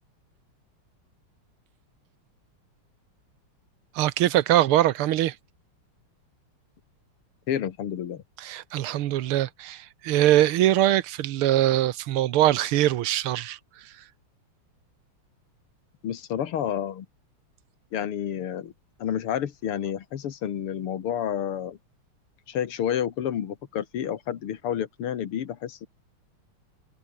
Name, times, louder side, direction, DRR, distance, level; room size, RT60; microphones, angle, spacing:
voice 1, 4.0-5.4 8.4-13.6 13.8-13.9, right 13 dB, 80° right, 1.8 m, -22 dB
voice 2, 7.5-8.2 16.0-17.1 17.9-18.7 19.0-21.8 22.5-25.9, left 9 dB, 90° left, 2.4 m, -30 dB
omnidirectional pair, 2.4 m